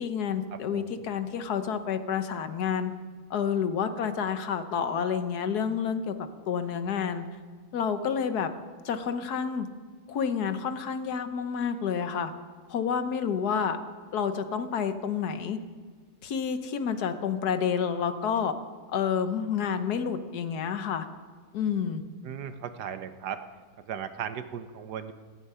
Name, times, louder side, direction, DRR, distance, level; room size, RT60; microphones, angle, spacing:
voice 1, 0.0-2.9 3.3-6.1 6.5-7.2 7.7-8.5 8.8-9.7 10.1-12.3 12.7-13.8 14.1-15.6 16.2-18.5 18.9-21.1 21.5-22.0, left 7 dB, 75° left, 10 dB, 1.5 m, -29 dB
voice 2, 0.5-0.9 22.2-23.4 23.9-25.1, right 8 dB, 85° right, 10 dB, 1.5 m, -37 dB
17.0 x 15.0 x 5.6 m, 1.5 s
omnidirectional pair, 1.7 m